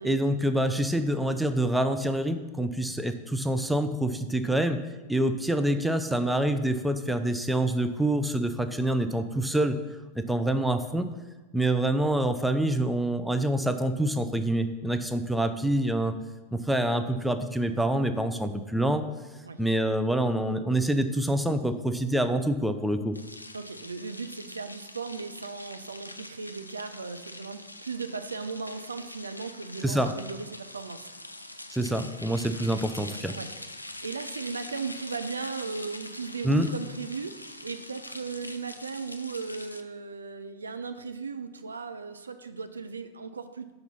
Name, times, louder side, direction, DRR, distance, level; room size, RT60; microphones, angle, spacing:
voice 1, 0.0-4.8 5.1-9.8 10.1-11.1 11.5-16.1 16.5-19.1 19.6-23.2 29.8-30.1 31.7-33.3 36.4-36.7, right 1 dB, 5° right, 8 dB, 0.4 m, -26 dB
sound 1, 23.1-39.8, left 1 dB, 85° left, 0.4 m, -44 dB
voice 2, 23.5-31.1 33.3-33.5 34.0-43.7, right 4 dB, 75° right, 9 dB, 0.4 m, -37 dB
5.9 x 3.9 x 5.6 m, 1.2 s
figure-of-eight pair, 90°, 0 cm